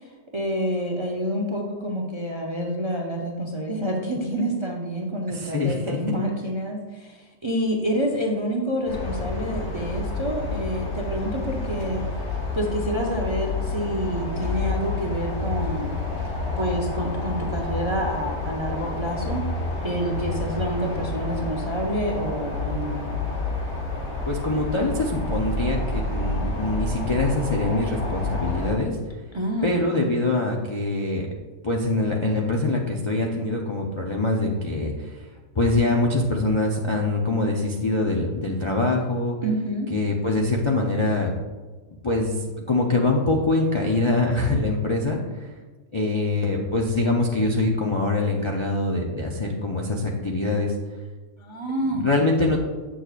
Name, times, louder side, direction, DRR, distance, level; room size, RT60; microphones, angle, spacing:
voice 1, 0.3-12.3 12.5-16.0 16.6-19.4 19.8-23.0 29.3-30.0 39.4-39.9 51.4-52.2, equal, 35° right, 0 dB, 0.5 m, -28 dB
voice 2, 5.3-6.0 24.3-28.9 29.6-31.3 31.6-35.2 35.5-39.4 39.9-41.3 42.0-45.5 45.9-50.7 51.9-52.6, left 2 dB, 40° left, -2 dB, 0.4 m, -24 dB
sound 1, 8.9-28.7, left 3 dB, 55° left, 1.9 m, -29 dB
7.9 x 6.3 x 2.4 m, 1.3 s
omnidirectional pair, 1.4 m